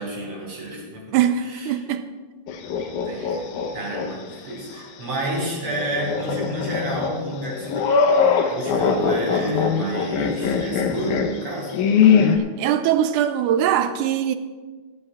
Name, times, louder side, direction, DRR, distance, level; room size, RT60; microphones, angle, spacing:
voice 1, 0.0-1.2 1.5-1.8 3.0-8.0 8.5-11.8, right 1 dB, 50° right, 4.2 m, -30 dB
voice 2, 1.1-2.1 12.4-14.4, right 10 dB, 80° right, 2.1 m, -22 dB
sound 1, 2.5-4.1 4.5-4.6 5.6-12.4, left 6 dB, 80° left, 2.3 m, -21 dB
19.5 x 12.5 x 2.4 m
omnidirectional pair, 3.6 m